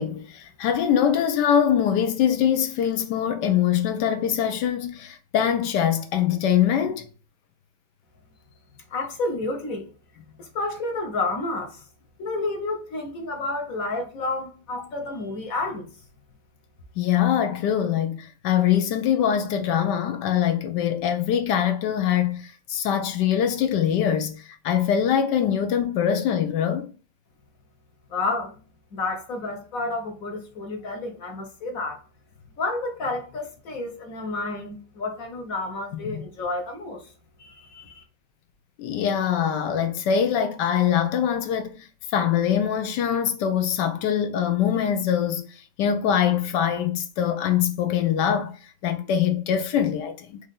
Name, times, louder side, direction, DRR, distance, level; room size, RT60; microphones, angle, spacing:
voice 1, 0.0-7.1 14.8-14.9 17.0-26.9 36.1-36.2 38.8-50.4, left 9 dB, 80° left, 1.2 m, -23 dB
voice 2, 8.9-9.9 10.4-11.8 12.2-15.9 28.1-28.6 28.9-32.0 32.6-37.1 37.4-38.0, left 2 dB, 55° left, 1.4 m, -30 dB
5.0 x 2.6 x 3.6 m
omnidirectional pair, 1.9 m